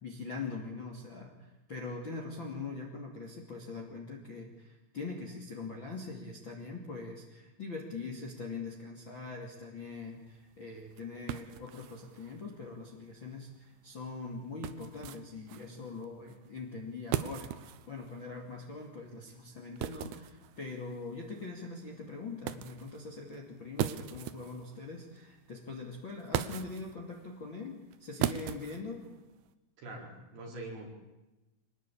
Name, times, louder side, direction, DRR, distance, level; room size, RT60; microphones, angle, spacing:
voice 1, 0.0-17.5 17.9-29.1, left 3 dB, 30° left, 1 dB, 2.4 m, -42 dB
sound 1, 9.9-29.5, right 12 dB, 80° right, 2.3 m, -41 dB
voice 2, 29.8-30.9, right 2 dB, 55° right, 0 dB, 6.2 m, -43 dB
25.5 x 19.5 x 8.7 m, 1.1 s
omnidirectional pair, 5.8 m